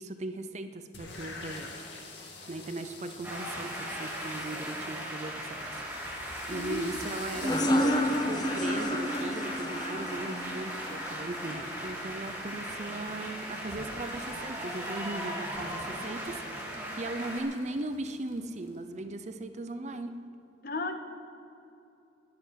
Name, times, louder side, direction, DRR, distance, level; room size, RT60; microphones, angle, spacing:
voice 1, 0.0-1.7 2.5-6.1 6.5-20.1, right 2 dB, 40° right, 9 dB, 0.6 m, -38 dB
sound 1, 0.9-18.8, left 3 dB, 70° left, 2.1 m, -50 dB
sound 2, 3.2-17.4, equal, 10° right, 3.0 m, -38 dB
voice 2, 6.5-6.9 20.6-21.0, left 3 dB, 50° left, 7 dB, 1.0 m, -34 dB
sound 3, 7.4-12.7, equal, 20° left, 0.8 m, -31 dB
21.0 x 7.8 x 5.8 m, 2.7 s
head